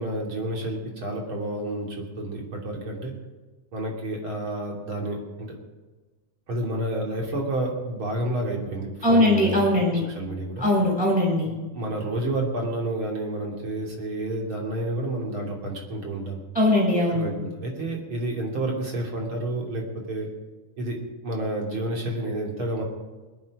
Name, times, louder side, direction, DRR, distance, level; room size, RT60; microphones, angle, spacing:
voice 1, 0.0-3.1 3.7-5.6 6.5-9.6 9.9-10.7 11.4-16.4 17.1-20.3 20.8-21.0 21.2-22.8, right 1 dB, 40° right, 0 dB, 3.4 m, -30 dB
voice 2, 9.0-10.0 10.6-11.5 16.5-17.3, left 1 dB, ahead, -2 dB, 5.6 m, -20 dB
20.5 x 10.5 x 4.9 m, 1.3 s
omnidirectional pair, 3.7 m